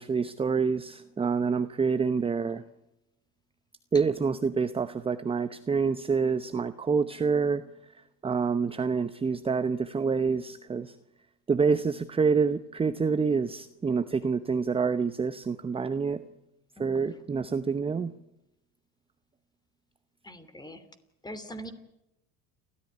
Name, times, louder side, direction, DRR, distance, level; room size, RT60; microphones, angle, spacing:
voice 1, 0.0-2.6 3.9-7.6 8.2-10.9 11.5-16.2 16.8-18.1, right 5 dB, 15° right, 12 dB, 0.8 m, -27 dB
voice 2, 16.8-17.1 20.2-20.8 21.2-21.7, equal, 10° left, 12 dB, 3.0 m, -42 dB
29.5 x 14.0 x 9.7 m, 0.91 s
supercardioid pair, 110°, 34 cm